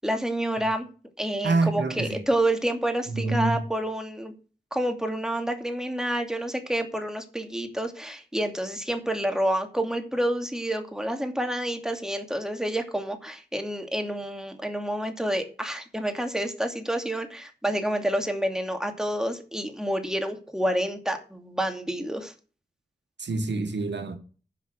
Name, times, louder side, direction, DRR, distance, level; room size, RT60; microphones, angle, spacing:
voice 1, 0.0-0.9 1.2-4.3 4.7-22.3, right 1 dB, 5° right, 2.6 m, -28 dB
voice 2, 1.4-2.2 3.1-3.7 23.2-24.2, right 3 dB, 80° right, 1.6 m, -26 dB
10.5 x 5.7 x 7.9 m
cardioid pair, 55°, 18 cm